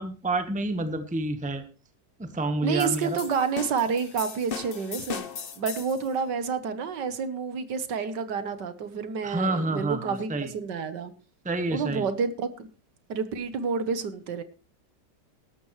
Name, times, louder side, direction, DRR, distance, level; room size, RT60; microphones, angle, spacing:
voice 1, 0.0-1.6 2.2-3.2 9.2-10.5 11.4-12.1, right 2 dB, 5° right, 9 dB, 0.9 m, -28 dB
voice 2, 2.6-5.3 5.6-11.1 11.7-12.7 13.1-14.4, right 5 dB, 70° right, 11 dB, 1.7 m, -29 dB
sound 1, 2.8-6.1, left 6 dB, 40° left, 0.8 m, -38 dB
18.5 x 12.5 x 3.2 m, 0.33 s
omnidirectional pair, 2.0 m